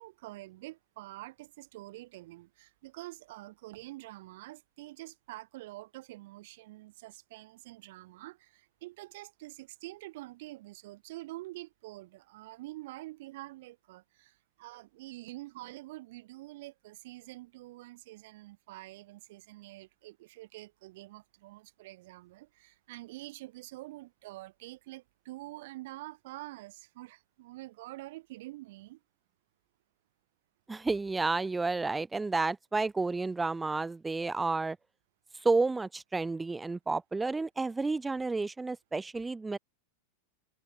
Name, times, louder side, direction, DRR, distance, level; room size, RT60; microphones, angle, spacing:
voice 1, 0.0-29.0, right 18 dB, 50° right, 5.9 m, -47 dB
voice 2, 30.7-34.8 35.4-39.6, right 3 dB, 10° right, 1.1 m, -31 dB
figure-of-eight pair, 90°, 0 cm